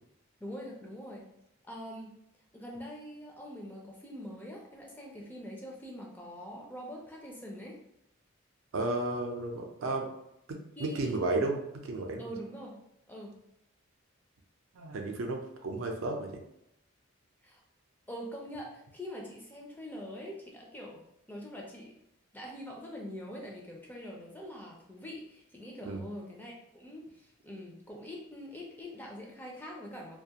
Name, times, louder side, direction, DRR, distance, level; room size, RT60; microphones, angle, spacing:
voice 1, 0.4-1.2 1.6-2.2 2.5-7.8 10.8-11.3 12.2-12.8 13.1-13.3 17.4-17.6 18.1-21.0 21.3-21.9 22.3-30.2, equal, 10° left, -2 dB, 0.3 m, -44 dB
voice 2, 8.7-10.1 10.5-12.3 14.7-16.4 25.9-26.0, right 2 dB, 75° right, 2 dB, 0.5 m, -33 dB
2.4 x 2.3 x 2.7 m, 0.81 s
head